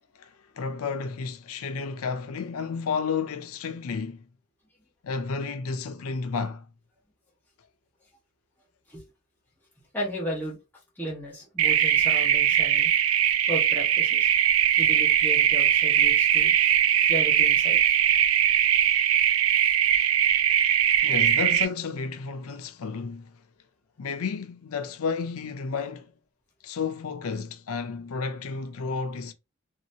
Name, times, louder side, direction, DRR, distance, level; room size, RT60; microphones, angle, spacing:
voice 1, 0.1-4.3 5.0-6.7 21.0-23.4 24.0-26.1 26.6-29.3, left 5 dB, 85° left, 0.5 m, -32 dB
voice 2, 9.9-10.6 11.0-12.9 13.5-14.3 14.8-16.5 17.1-17.8, equal, 10° left, 1.4 m, -34 dB
sound 1, 11.6-21.7, right 10 dB, 75° right, 0.4 m, -21 dB
3.1 x 2.8 x 2.7 m
head